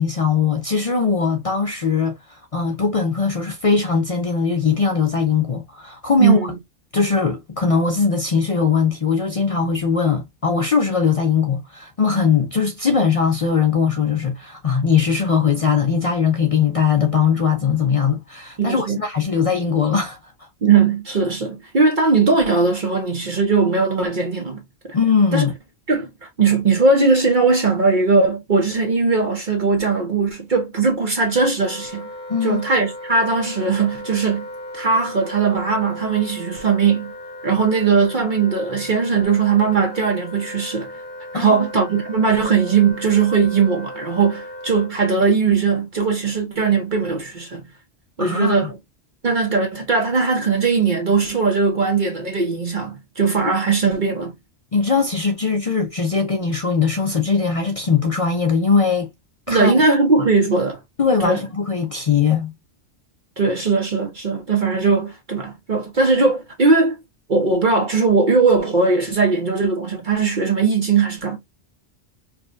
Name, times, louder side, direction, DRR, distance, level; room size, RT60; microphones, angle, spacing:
voice 1, 0.0-6.4 6.9-20.5 24.9-25.5 32.3-32.6 41.3-41.7 48.2-48.7 54.7-59.1 59.5-59.7 61.0-62.5, left 5 dB, 45° left, 0.4 m, -20 dB
voice 2, 6.2-6.6 18.6-19.0 20.6-24.6 25.3-25.5 25.9-32.1 32.4-34.5 34.7-37.1 37.4-40.9 41.3-47.6 48.2-48.7 49.2-54.3 59.5-60.8 61.2-61.4 63.4-67.0 67.3-71.4, right 4 dB, 45° right, 0.9 m, -19 dB
Wind instrument woodwind instrument, 31.6-44.9, left 1 dB, 20° left, 1.4 m, -36 dB
4.7 x 2.3 x 2.5 m
omnidirectional pair, 1.2 m